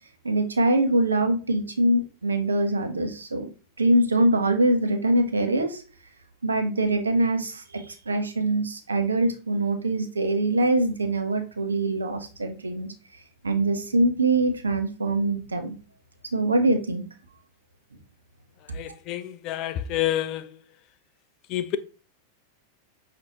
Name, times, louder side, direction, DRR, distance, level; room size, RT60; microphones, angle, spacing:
voice 1, 0.2-3.5 3.8-5.8 6.4-12.9 13.4-15.7 16.3-17.0, right 2 dB, 75° right, 0.6 m, -23 dB
voice 2, 18.7-20.5 21.5-21.8, left 12 dB, 40° left, 0.3 m, -28 dB
5.3 x 2.5 x 2.8 m
figure-of-eight pair, 90°, 0 cm